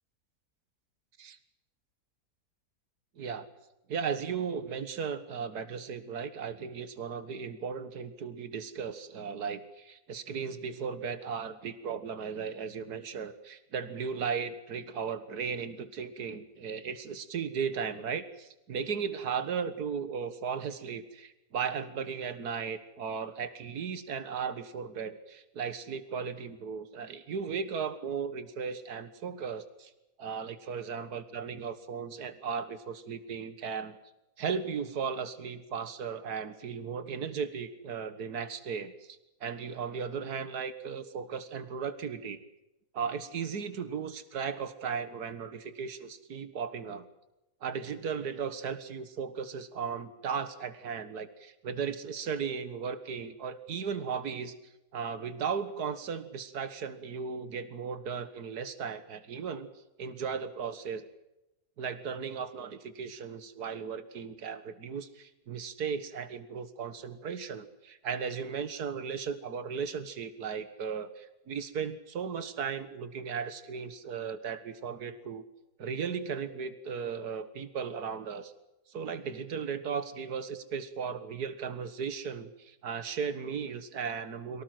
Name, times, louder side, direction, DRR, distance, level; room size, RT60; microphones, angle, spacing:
voice 1, 3.2-3.5 3.9-29.9 30.2-34.0 34.4-42.4 42.9-47.1 47.6-54.5 54.9-59.7 60.0-61.0 61.8-75.4 75.8-78.5 78.9-84.6, right 6 dB, 80° right, 12 dB, 2.0 m, -36 dB
24.0 x 17.5 x 7.8 m, 0.94 s
omnidirectional pair, 1.7 m